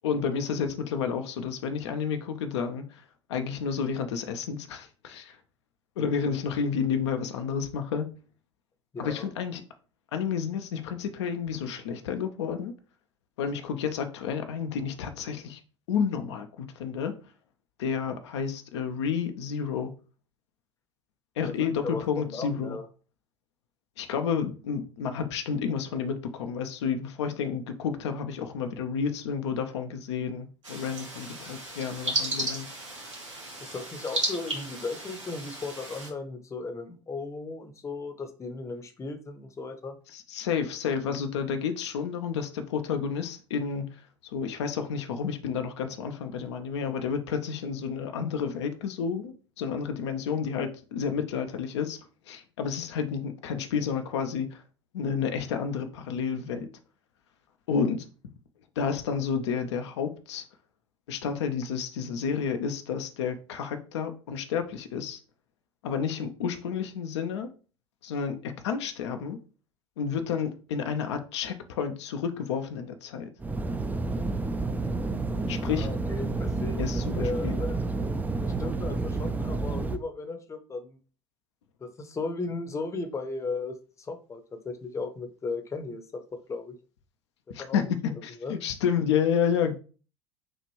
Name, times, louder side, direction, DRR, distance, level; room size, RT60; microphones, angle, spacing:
voice 1, 0.0-3.0 3.3-5.4 6.0-8.1 9.0-9.6 10.1-12.7 13.4-15.6 15.9-17.1 17.8-19.9 21.4-22.8 24.0-32.7 40.1-43.8 44.3-52.0 52.3-54.6 54.9-56.7 57.7-58.0 58.8-60.4 61.1-65.2 65.8-67.5 68.0-69.4 70.0-73.3 75.5-75.9 76.8-77.6 87.5-87.8 88.2-89.7, left 6 dB, 65° left, 0.6 m, -30 dB
voice 2, 8.9-9.3 21.4-22.9 33.6-40.0 75.7-77.8 78.4-81.0 81.8-86.2 86.5-86.8 87.5-87.8 88.4-88.6, left 3 dB, 20° left, 0.8 m, -36 dB
sound 1, 30.6-36.1, right 2 dB, 85° right, 1.6 m, -34 dB
sound 2, 73.4-80.0, right 3 dB, 10° right, 0.4 m, -30 dB
6.2 x 2.5 x 3.1 m
figure-of-eight pair, 75°, 16 cm